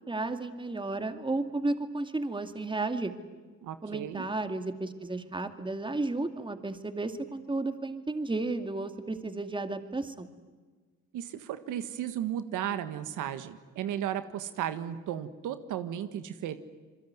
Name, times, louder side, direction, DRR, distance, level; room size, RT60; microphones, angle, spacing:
voice 1, 0.0-3.1 3.8-10.3, right 2 dB, 15° right, 8 dB, 2.3 m, -33 dB
voice 2, 3.6-4.2 11.1-16.6, right 10 dB, 90° right, 10 dB, 1.6 m, -35 dB
27.5 x 22.5 x 9.5 m, 1.4 s
cardioid pair, 90°, 30 cm